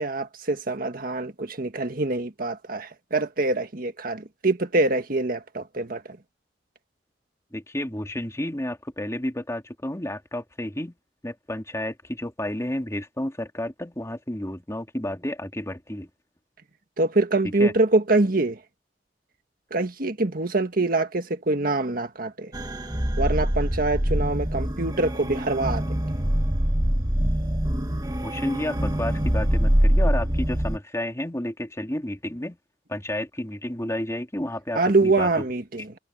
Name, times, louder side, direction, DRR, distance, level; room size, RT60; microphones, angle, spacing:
voice 1, 0.0-6.2 17.0-18.6 19.7-22.5 23.2-25.9 34.7-35.9, right 2 dB, 50° right, 1.7 m, -24 dB
voice 2, 7.5-10.9 11.2-16.1 17.6-17.7 28.2-32.6 32.9-35.3, left 1 dB, 15° left, 2.7 m, -31 dB
sound 1, 22.5-30.8, equal, 20° right, 1.4 m, -24 dB
head